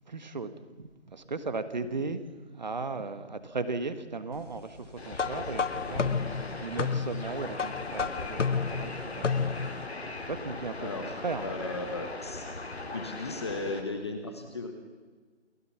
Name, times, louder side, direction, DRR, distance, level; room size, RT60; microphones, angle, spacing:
voice 1, 0.1-2.2 2.5-10.9 11.2-11.5, right 3 dB, 40° right, 11 dB, 1.5 m, -37 dB
sound 1, 5.0-13.8, left 2 dB, 60° left, 3.5 m, -39 dB
sound 2, 5.1-9.9, left 5 dB, 85° left, 0.8 m, -31 dB
voice 2, 10.8-11.1 11.4-12.5 12.9-14.7, left 2 dB, 20° left, 5 dB, 1.2 m, -36 dB
29.0 x 15.5 x 5.9 m, 1.4 s
figure-of-eight pair, 165°, 36 cm